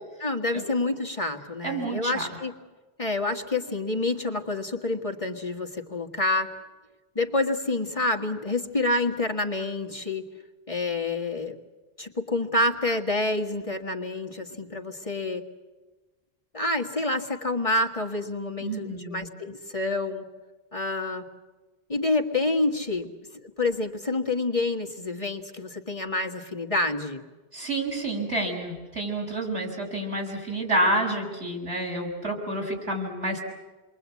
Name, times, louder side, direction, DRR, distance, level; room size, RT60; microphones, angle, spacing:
voice 1, 0.2-2.5 3.0-6.5 7.2-10.2 10.7-11.6 12.0-15.4 16.5-20.2 20.7-21.3 21.9-27.2, left 2 dB, 30° left, 2 dB, 1.7 m, -28 dB
voice 2, 1.6-2.2 18.6-19.3 27.5-33.4, right 1 dB, 90° right, 1 dB, 7.2 m, -29 dB
29.0 x 23.0 x 8.4 m, 1.2 s
omnidirectional pair, 1.1 m